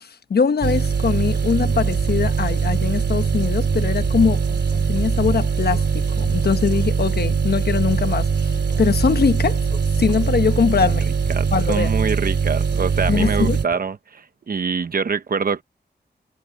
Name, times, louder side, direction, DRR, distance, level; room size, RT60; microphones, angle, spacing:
voice 1, 0.0-4.4 4.9-8.3 8.8-9.6 10.0-11.1 11.5-11.9 13.1-13.6, left 6 dB, 65° left, 1.1 m, -21 dB
sound 1, 0.6-13.6, right 6 dB, 85° right, 2.5 m, -21 dB
sound 2, 1.6-13.9, left 3 dB, 35° left, 2.6 m, -38 dB
voice 2, 11.3-15.6, right 5 dB, 55° right, 1.1 m, -25 dB
wide cardioid pair, 135°, 17 cm